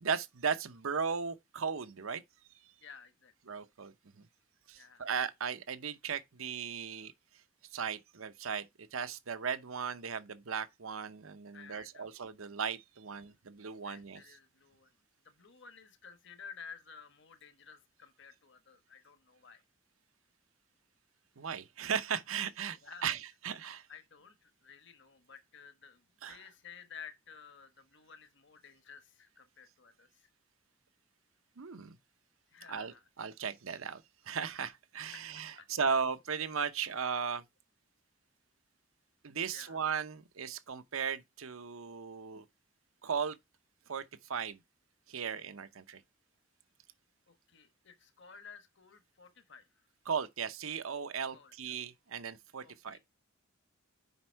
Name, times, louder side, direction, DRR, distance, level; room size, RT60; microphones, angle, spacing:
voice 1, 0.0-2.2 3.4-4.3 4.7-7.1 7.7-14.2 21.4-23.9 26.2-26.5 31.6-32.0 32.7-37.4 39.2-42.4 43.0-43.4 43.9-44.0 44.3-44.6 45.1-46.0 50.0-53.0, right 6 dB, 80° right, 0.8 m, -37 dB
voice 2, 2.8-3.3 4.7-5.1 11.5-12.1 13.1-13.4 13.8-15.0 15.2-19.6 22.7-23.1 23.9-30.3 32.5-33.0 35.1-35.9 39.5-39.8 47.3-49.9 51.3-51.7 52.6-53.0, left 6 dB, 55° left, 1.3 m, -54 dB
8.0 x 5.3 x 4.4 m
head